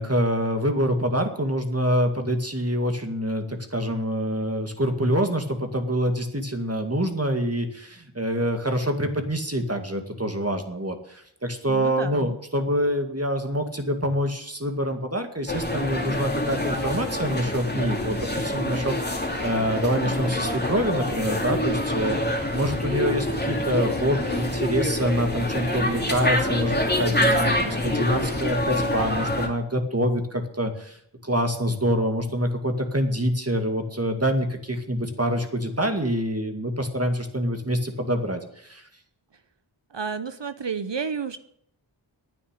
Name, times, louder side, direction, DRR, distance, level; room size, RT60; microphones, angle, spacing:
voice 1, 0.0-22.2 22.5-38.9, equal, 30° right, 6 dB, 2.2 m, -26 dB
voice 2, 11.7-12.4 39.9-41.4, right 5 dB, 65° right, 12 dB, 0.8 m, -31 dB
sound 1, 15.5-29.5, left 1 dB, 20° left, 2.7 m, -26 dB
9.8 x 9.5 x 10.0 m, 0.72 s
wide cardioid pair, 40°, 47 cm